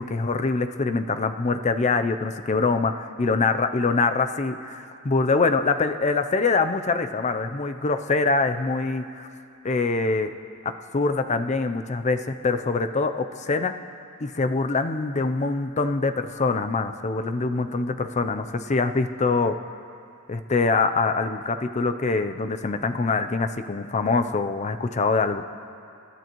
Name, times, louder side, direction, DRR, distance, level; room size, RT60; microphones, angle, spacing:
voice 1, 0.0-9.3 9.6-10.3 10.6-13.7 14.2-19.6 20.3-25.4, left 3 dB, 35° left, 9 dB, 0.5 m, -24 dB
28.0 x 12.0 x 3.1 m, 2.5 s
head